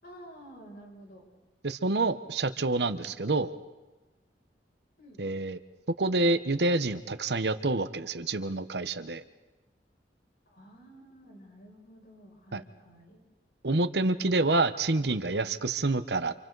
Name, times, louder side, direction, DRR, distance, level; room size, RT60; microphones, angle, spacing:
voice 1, 0.0-1.2 5.0-5.2 10.5-13.2, right 1 dB, 60° left, -1 dB, 6.6 m, -51 dB
voice 2, 1.6-3.5 5.2-5.6 6.0-9.2 12.5-12.6 13.6-16.3, right 2 dB, 70° right, 11 dB, 1.0 m, -27 dB
28.5 x 27.5 x 4.0 m, 1.1 s
head